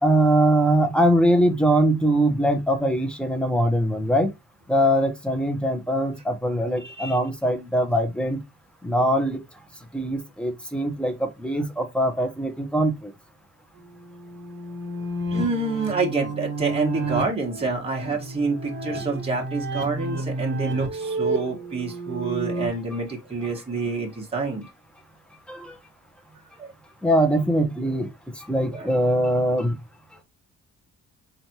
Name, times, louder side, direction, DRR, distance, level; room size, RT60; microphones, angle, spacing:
voice 1, 0.0-4.3 4.7-8.4 8.8-9.4 9.9-13.1 25.5-25.7 27.0-28.1 28.4-29.7, right 1 dB, 5° left, 1.1 m, -22 dB
voice 2, 6.8-7.2 15.3-24.6 26.6-26.7 28.7-28.9, right 3 dB, 20° right, 1.6 m, -27 dB
sound 1, 13.8-22.7, right 2 dB, 35° right, 1.5 m, -31 dB
4.2 x 3.3 x 2.9 m
cardioid pair, 90°, 30 cm